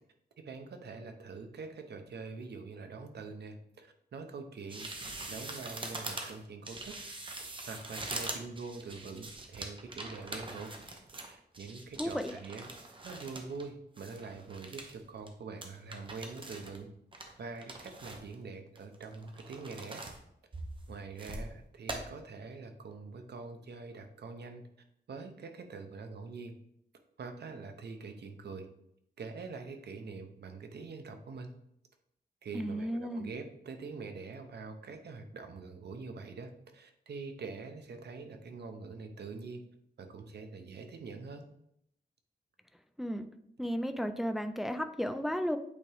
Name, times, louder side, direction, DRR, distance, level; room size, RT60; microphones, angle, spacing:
voice 1, 0.4-4.9 5.3-7.0 7.6-10.8 11.1-12.7 13.0-16.9 17.4-20.0 20.9-24.6 25.1-26.6 27.2-28.7 29.2-31.5 32.4-39.6 40.0-41.5, right 4 dB, 75° right, 6 dB, 0.8 m, -44 dB
sound 1, 4.7-13.7 14.0-14.9 15.3-15.4 15.6-16.8 17.1-18.3 18.8-20.2 20.5-21.5 21.9-22.0, right 2 dB, 30° right, 0.8 m, -43 dB
voice 2, 12.0-12.3 32.5-33.3 43.0-43.3 43.6-45.6, equal, ahead, 8 dB, 0.3 m, -34 dB
8.3 x 3.6 x 3.4 m, 0.74 s
wide cardioid pair, 160°, 17 cm